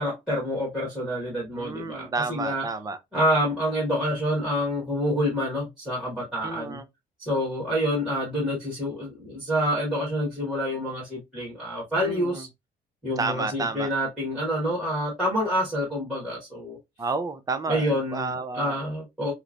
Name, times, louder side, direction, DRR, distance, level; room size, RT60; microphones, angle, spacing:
voice 1, 0.0-2.6 3.1-6.8 7.2-12.5 13.0-16.8 17.7-19.3, equal, 5° right, 1.4 m, -27 dB
voice 2, 1.5-3.0 6.4-6.8 12.0-12.5 13.2-13.9 17.0-18.8, right 4 dB, 20° right, 0.4 m, -31 dB
2.9 x 2.0 x 2.4 m
cardioid pair, 110°, 17 cm